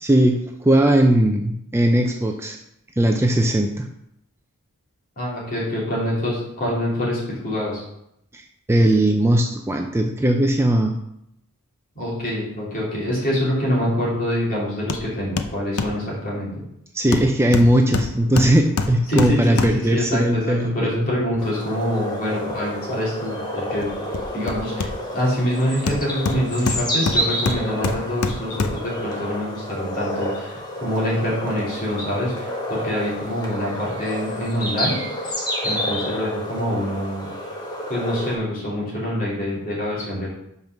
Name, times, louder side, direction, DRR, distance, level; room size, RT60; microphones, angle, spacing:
voice 1, 0.0-2.6 3.0-3.9 8.3-10.9 16.9-21.1, right 1 dB, 10° right, 3 dB, 0.4 m, -19 dB
voice 2, 5.2-7.8 11.9-16.5 19.1-23.9 24.3-35.0 35.6-37.3 37.9-40.3, equal, 40° left, -6 dB, 3.0 m, -25 dB
Hammer, 14.9-15.1 15.4-16.0 17.1-20.0 23.8-25.3 25.9-29.0 29.4-29.5, left 3 dB, 80° left, 0.6 m, -26 dB
sound 1, 21.4-38.3, equal, 20° left, 1.4 m, -29 dB
5.5 x 5.3 x 6.0 m, 0.78 s
head